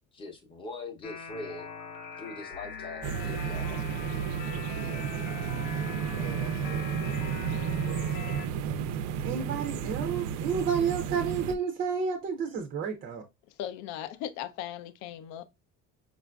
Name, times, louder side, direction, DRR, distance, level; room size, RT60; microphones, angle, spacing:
voice 1, 0.1-1.7 2.2-3.8, left 3 dB, 20° left, 0.7 m, -42 dB
sound 1, 1.0-8.5, left 6 dB, 90° left, 0.9 m, -42 dB
sound 2, 3.0-11.5, right 7 dB, 85° right, 0.5 m, -32 dB
voice 2, 4.7-5.1 6.1-7.0 7.5-8.1 9.2-13.2, right 6 dB, 30° right, 0.5 m, -32 dB
voice 3, 13.6-15.4, left 11 dB, 65° left, 0.5 m, -38 dB
4.9 x 2.4 x 2.2 m
cardioid pair, 180°, 29 cm